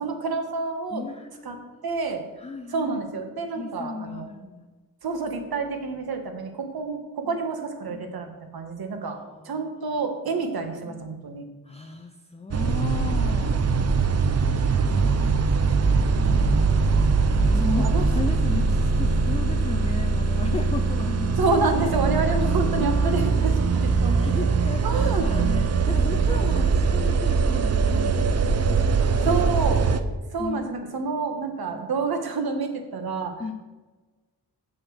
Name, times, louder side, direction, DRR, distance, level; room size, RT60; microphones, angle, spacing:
voice 1, 0.0-1.1 1.4-2.2 2.7-4.3 5.0-9.2 9.4-11.4 14.9-15.3 17.6-18.1 18.5-18.6 21.4-24.3 24.8-25.5 26.4-26.6 29.0-29.9 30.3-33.3, right 4 dB, 60° right, 5 dB, 1.3 m, -28 dB
voice 2, 0.9-2.0 2.4-3.0 3.6-4.7 7.2-7.4 7.9-8.0 9.0-9.6 10.8-11.2 11.7-13.6 14.9-15.4 16.2-16.4 16.7-16.9 17.5-21.5 22.8-23.5 24.2-29.4 30.4-30.7 31.7-31.8 33.4-33.5, left 4 dB, 15° left, 5 dB, 0.4 m, -35 dB
sound 1, 12.5-30.0, right 4 dB, 40° right, 0.6 m, -22 dB
6.4 x 6.0 x 6.4 m, 1.2 s
wide cardioid pair, 115°, 41 cm